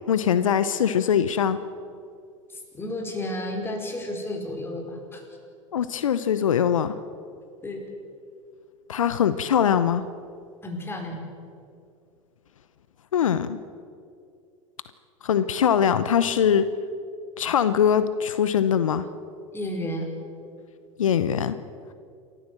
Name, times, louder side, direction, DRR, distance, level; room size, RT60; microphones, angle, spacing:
voice 1, 0.1-1.6 5.7-6.9 8.9-10.0 13.1-13.6 15.2-16.7 17.4-19.1 21.0-21.6, left 8 dB, 80° left, 13 dB, 0.9 m, -22 dB
voice 2, 2.5-5.2 7.6-7.9 10.6-11.2 19.5-20.1, left 1 dB, 15° left, 2 dB, 5.2 m, -32 dB
28.0 x 14.0 x 7.7 m, 2.4 s
hypercardioid pair, 95°, 17 cm